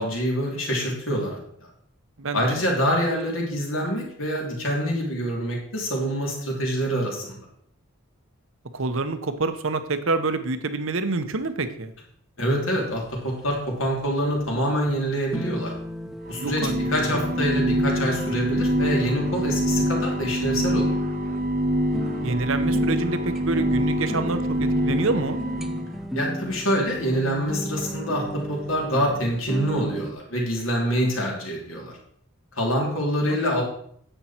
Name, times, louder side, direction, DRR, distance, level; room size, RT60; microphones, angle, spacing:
voice 1, 0.0-1.4 2.3-7.4 12.4-15.7 16.3-21.0 26.1-32.0 32.5-33.6, equal, 65° left, -1 dB, 3.3 m, -26 dB
voice 2, 2.2-2.5 8.7-11.9 16.4-16.7 17.0-17.2 22.2-25.4 33.3-33.4, right 3 dB, 65° right, 10 dB, 0.9 m, -27 dB
sound 1, 12.9-30.1, equal, ahead, 0.5 m, -36 dB
sound 2, 16.3-26.0, equal, 40° right, 1.1 m, -25 dB
9.9 x 7.9 x 4.4 m, 0.66 s
head